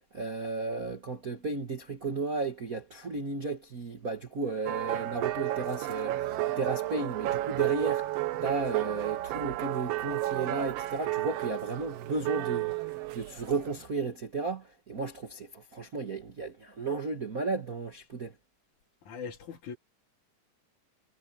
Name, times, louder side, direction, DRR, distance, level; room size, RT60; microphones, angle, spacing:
voice 1, 0.1-8.1 8.4-18.3, right 3 dB, 40° right, 1.3 m, -34 dB
sound 1, 4.7-13.8, right 15 dB, 80° right, 1.4 m, -32 dB
voice 2, 19.1-19.8, left 6 dB, 65° left, 3.7 m, -40 dB
omnidirectional pair, 3.7 m